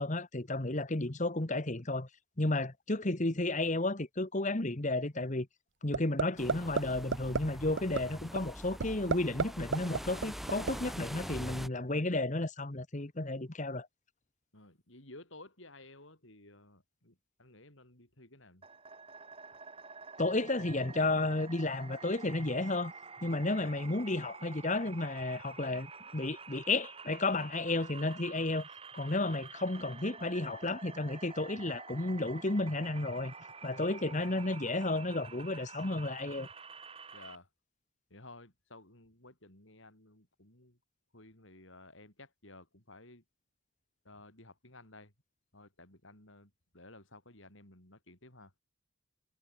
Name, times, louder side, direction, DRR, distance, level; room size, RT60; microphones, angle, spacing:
voice 1, 0.0-2.1 2.4-5.5 5.8-13.9 20.2-22.9 23.2-28.7 28.9-33.3 33.6-36.5, left 2 dB, 35° left, 1.4 m, -32 dB
sound 1, 5.9-6.2 6.5-6.8 7.1-7.4 7.8-8.0 8.4-8.5 8.8-9.5 9.7-10.7, right 5 dB, 55° right, 0.5 m, -29 dB
sound 2, 6.4-11.7, equal, ahead, 1.9 m, -44 dB
voice 2, 14.5-18.6 37.1-37.5 38.1-40.8 41.1-43.2 44.0-45.1 45.5-48.5, left 2 dB, 65° left, 6.5 m, -55 dB
sound 3, 18.6-37.4, right 5 dB, 25° right, 5.0 m, -49 dB
head